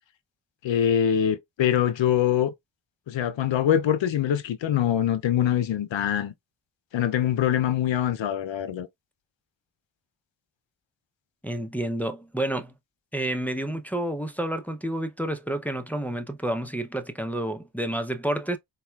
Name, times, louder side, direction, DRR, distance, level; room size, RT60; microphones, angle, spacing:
voice 1, 0.6-2.5 3.1-6.3 6.9-8.9, left 10 dB, 75° left, 0.6 m, -24 dB
voice 2, 11.4-12.7 13.1-18.6, right 1 dB, 5° left, 0.6 m, -29 dB
4.0 x 2.3 x 2.3 m
cardioid pair, 45°, 45 cm